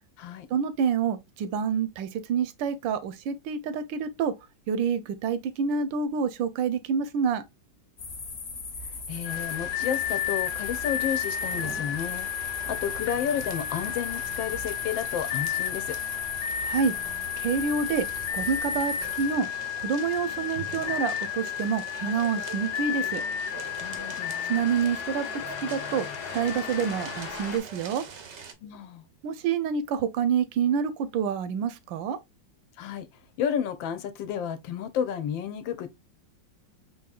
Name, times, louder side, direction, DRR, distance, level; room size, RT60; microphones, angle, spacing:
voice 1, 0.5-4.3 4.7-7.4 16.6-16.9 17.4-18.1 18.3-19.5 19.8-23.2 24.5-25.3 25.6-28.0 29.2-32.2, right 6 dB, 85° right, 1.3 m, -27 dB
sound 1, 8.0-19.3, left 3 dB, 40° left, 1.1 m, -39 dB
voice 2, 9.1-16.0 23.8-24.4 28.6-29.0 32.8-33.1 33.4-35.9, left 8 dB, 85° left, 1.4 m, -32 dB
sound 2, 9.2-27.6, left 10 dB, 65° left, 1.1 m, -33 dB
sound 3, 9.3-28.5, right 6 dB, 65° right, 0.6 m, -44 dB
4.8 x 2.8 x 2.3 m
omnidirectional pair, 2.1 m